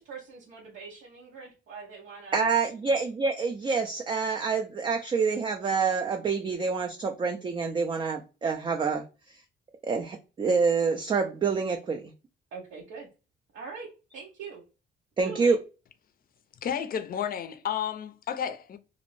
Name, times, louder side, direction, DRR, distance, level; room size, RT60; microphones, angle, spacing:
voice 1, 0.0-2.4 12.5-13.1 13.5-13.9 14.1-14.6 15.2-15.6, right 5 dB, 80° right, 0.8 m, -42 dB
voice 2, 2.3-9.4 9.8-12.1 15.2-15.6, right 5 dB, 25° right, 0.3 m, -27 dB
voice 3, 16.6-18.8, left 8 dB, 45° left, 0.4 m, -32 dB
2.5 x 2.0 x 3.0 m
cardioid pair, 90°, 20 cm